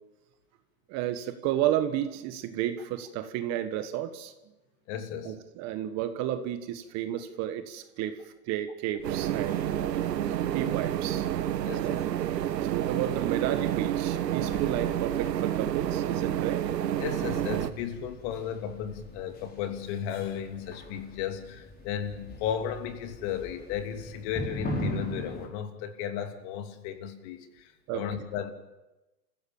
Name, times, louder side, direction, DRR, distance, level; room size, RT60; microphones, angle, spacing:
voice 1, 0.9-4.3 5.2-8.2 8.5-9.6 10.5-11.3 11.8-12.0 12.7-16.6 27.9-28.0, right 11 dB, 35° right, 10 dB, 1.5 m, -32 dB
voice 2, 4.9-5.3 11.6-12.0 17.0-28.5, left 9 dB, 45° left, 7 dB, 2.9 m, -35 dB
sound 1, 9.0-25.5, left 1 dB, 20° left, 4.5 m, -42 dB
sound 2, 9.0-17.7, right 11 dB, 80° right, 1.4 m, -29 dB
28.0 x 15.5 x 7.2 m, 1.0 s
hypercardioid pair, 135°, 49 cm